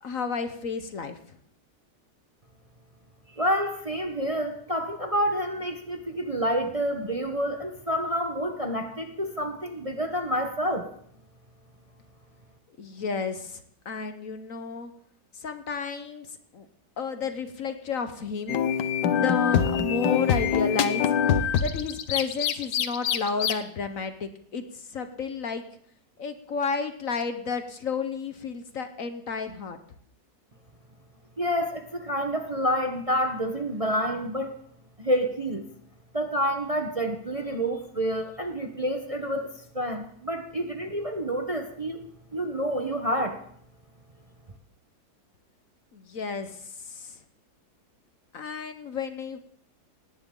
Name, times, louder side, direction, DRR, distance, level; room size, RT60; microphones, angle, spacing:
voice 1, 0.0-1.4 12.8-14.9 15.3-16.7 17.0-18.6 19.1-21.1 21.6-25.6 26.2-29.8 45.9-47.2 48.3-49.4, left 5 dB, 55° left, 9 dB, 1.3 m, -32 dB
voice 2, 3.4-10.9 31.4-34.5 35.0-35.7 36.1-42.0 42.3-43.4, equal, 25° right, 5 dB, 1.0 m, -28 dB
sound 1, 18.5-23.5, left 8 dB, 80° left, 1.5 m, -24 dB
18.5 x 17.0 x 3.8 m, 0.64 s
omnidirectional pair, 1.8 m